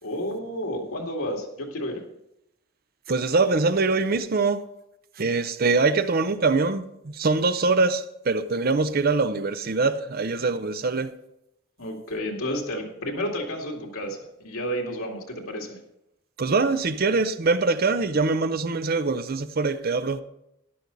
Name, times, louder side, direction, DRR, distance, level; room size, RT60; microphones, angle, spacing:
voice 1, 0.0-2.0 11.8-15.8, equal, 90° left, 2.4 m, -31 dB
voice 2, 3.1-4.7 5.2-11.1 16.4-20.2, right 3 dB, 45° right, 0.6 m, -23 dB
13.0 x 11.0 x 4.0 m
head